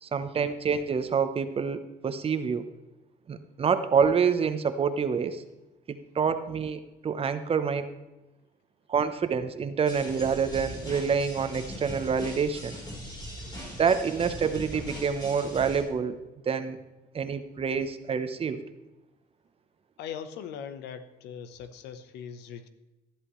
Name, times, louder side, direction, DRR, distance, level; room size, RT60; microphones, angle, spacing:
voice 1, 0.0-2.7 3.3-5.4 5.9-7.9 8.9-12.8 13.8-16.2 16.5-16.8 17.1-18.6, right 6 dB, 35° right, 10 dB, 0.9 m, -27 dB
sound 1, 9.9-15.8, equal, 25° left, 3.9 m, -40 dB
voice 2, 20.0-22.7, left 8 dB, 85° left, 11 dB, 0.9 m, -40 dB
13.0 x 11.0 x 3.2 m, 1.0 s
cardioid pair, 110°, 17 cm